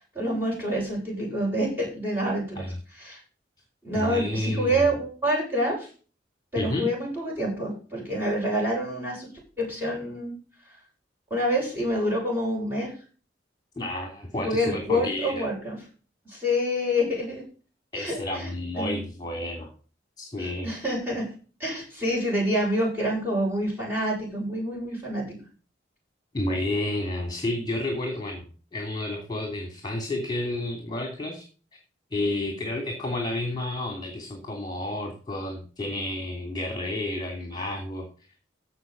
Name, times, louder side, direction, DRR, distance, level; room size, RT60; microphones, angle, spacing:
voice 1, 0.1-2.6 2.9-3.2 3.8-5.9 6.5-9.3 9.6-10.3 11.3-12.9 14.4-15.8 16.2-17.4 17.9-18.5 18.8-19.0 20.4-21.3 21.6-25.4, equal, 10° right, -3 dB, 7.7 m, -27 dB
voice 2, 3.9-4.7 6.6-6.9 13.8-15.5 17.9-19.7 20.2-20.7 26.3-31.4 32.1-38.1, left 1 dB, 20° left, 3 dB, 2.8 m, -31 dB
15.5 x 5.6 x 5.3 m, 0.37 s
head